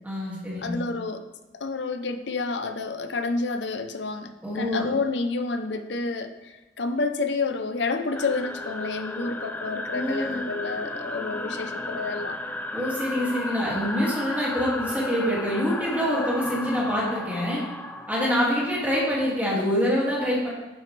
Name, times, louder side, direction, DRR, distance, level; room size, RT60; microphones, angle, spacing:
voice 1, 0.0-0.8 4.4-4.9 9.9-10.4 12.7-17.6 18.1-20.5, equal, 10° right, -6 dB, 2.2 m, -25 dB
voice 2, 0.6-1.3 1.6-12.4, left 3 dB, 70° left, 8 dB, 0.7 m, -29 dB
sound 1, 8.1-19.4, left 2 dB, 10° left, 0.4 m, -34 dB
10.5 x 7.6 x 3.3 m, 1.1 s
head